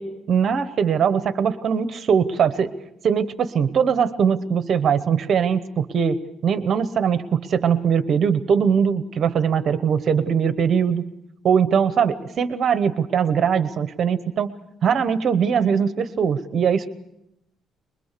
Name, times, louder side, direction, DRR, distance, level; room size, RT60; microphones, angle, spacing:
voice 1, 0.0-2.7 3.0-11.1 11.4-14.5 14.8-16.9, right 7 dB, 45° right, 12 dB, 1.0 m, -21 dB
24.0 x 22.0 x 6.8 m, 0.84 s
cardioid pair, 145°, 0 cm